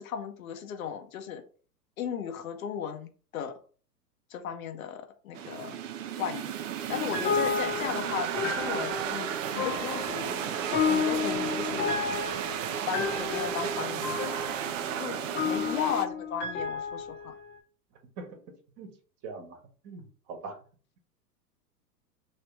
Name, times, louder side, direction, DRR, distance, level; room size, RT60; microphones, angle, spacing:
voice 1, 0.0-1.4 2.0-3.5 4.3-5.8 6.2-6.5 6.9-10.4 10.8-12.0 12.9-14.2 15.0-17.3, left 8 dB, 60° left, 6 dB, 0.8 m, -36 dB
sound 1, 5.3-16.0, right 9 dB, 55° right, 0.6 m, -33 dB
sound 2, 6.9-17.5, left 6 dB, 25° left, 0.9 m, -32 dB
voice 2, 15.4-15.7 18.2-18.4 18.8-18.9 19.2-19.6 19.8-20.6, right 3 dB, 35° right, 3 dB, 1.3 m, -42 dB
3.2 x 2.9 x 4.5 m, 0.41 s
figure-of-eight pair, 105°, 48 cm